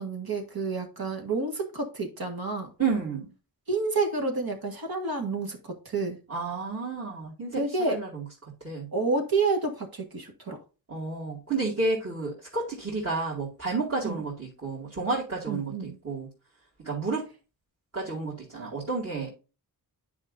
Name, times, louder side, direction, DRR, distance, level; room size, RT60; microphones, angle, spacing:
voice 1, 0.0-2.7 3.7-6.2 7.6-8.0 8.9-10.6 14.0-14.2 15.5-16.0, right 3 dB, 70° right, 1.8 m, -29 dB
voice 2, 2.8-3.3 6.3-8.2 8.6-8.9 10.9-16.3 16.8-17.3 17.9-19.3, right 3 dB, 40° right, 2.3 m, -31 dB
9.6 x 5.0 x 2.6 m
wide cardioid pair, 70°, 38 cm